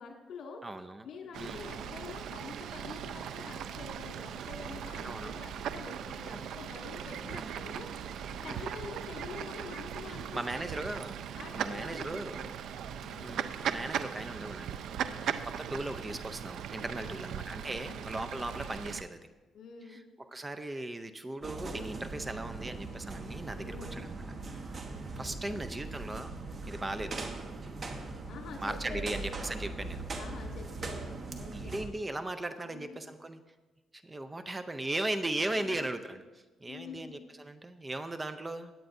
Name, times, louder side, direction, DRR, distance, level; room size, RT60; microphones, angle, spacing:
voice 1, 0.0-0.6 1.0-7.9 8.4-10.7 11.4-12.5 13.0-13.4 15.0-15.4 17.0-17.3 17.7-18.1 19.5-20.0 23.5-24.0 25.2-25.6 28.3-29.2 30.2-31.8 32.6-33.0 35.5-35.9 36.7-37.2, left 5 dB, 70° left, 1 dB, 2.1 m, -47 dB
voice 2, 0.6-1.0 1.4-1.6 5.0-5.4 7.3-7.6 8.4-8.7 10.1-11.1 11.5-12.4 13.2-19.2 19.8-24.2 25.2-26.3 26.7-27.2 28.6-30.0 31.5-33.4 33.9-36.2 36.6-38.7, right 2 dB, 20° right, 10 dB, 0.6 m, -38 dB
Fowl / Bird, 1.3-19.0, right 8 dB, 75° right, 0.5 m, -39 dB
sound 1, 21.4-31.9, right 3 dB, 40° right, 1.2 m, -40 dB
17.0 x 9.0 x 2.7 m, 1.2 s
cardioid pair, 90°, 0 cm